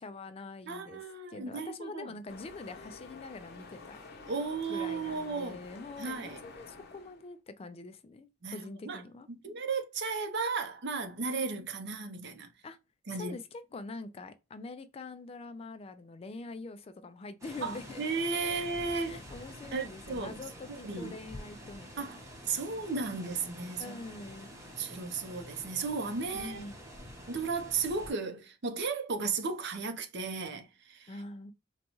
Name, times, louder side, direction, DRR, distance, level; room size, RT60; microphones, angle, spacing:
voice 1, 0.0-4.0 4.7-9.3 12.6-12.8 13.1-18.0 18.4-18.7 19.1-22.6 23.8-24.5 26.3-26.8 31.1-31.5, left 3 dB, 30° left, 0.3 m, -45 dB
voice 2, 0.7-2.1 4.3-5.6 6.0-6.4 8.4-9.0 9.3-12.5 13.1-13.4 17.6-19.2 19.7-20.4 20.7-21.2 22.0-22.2 22.5-24.0 24.8-26.6 27.3-31.1, right 4 dB, 60° right, 0.6 m, -35 dB
sound 1, 2.3-7.3, left 4 dB, 50° left, 0.9 m, -49 dB
sound 2, 17.4-28.1, equal, 15° right, 0.9 m, -48 dB
4.0 x 2.2 x 2.9 m
head